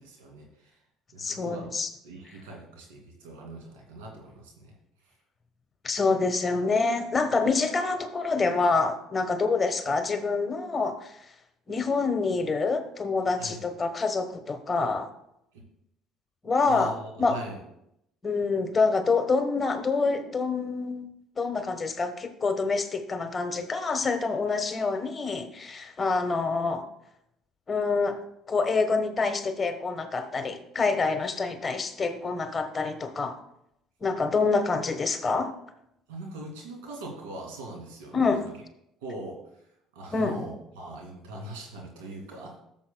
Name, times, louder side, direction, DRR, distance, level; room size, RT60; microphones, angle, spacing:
voice 1, 0.2-0.7 1.1-1.7 2.0-4.7 13.4-13.6 16.6-17.6 36.1-38.4 39.0-39.4 39.9-42.6, right 2 dB, 85° right, 0 dB, 2.4 m, -41 dB
voice 2, 1.2-1.9 2.3-2.4 5.8-11.2 11.7-15.1 16.4-17.4 18.2-21.1 21.4-26.9 27.7-28.2 28.5-33.4 34.0-35.5 38.1-38.5 40.1-40.4, left 4 dB, 30° left, 8 dB, 1.1 m, -26 dB
14.0 x 7.0 x 2.2 m, 0.78 s
supercardioid pair, 75°, 0 cm